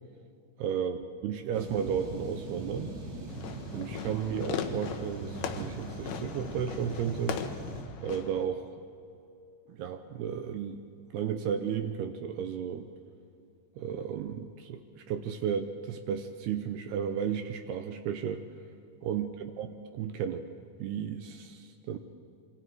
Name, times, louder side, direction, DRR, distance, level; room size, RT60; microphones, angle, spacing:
voice 1, 0.6-2.9 3.7-7.4 8.0-8.7 9.7-10.8 11.1-12.9 13.8-18.4 19.0-19.7 19.9-20.5 20.8-22.0, right 8 dB, 80° right, 7 dB, 2.4 m, -33 dB
sound 1, 1.5-7.8, right 2 dB, 50° right, 5.5 m, -40 dB
Fireworks, 3.3-8.4, left 8 dB, 70° left, 2.6 m, -39 dB
27.5 x 24.5 x 4.7 m, 2.6 s
omnidirectional pair, 5.7 m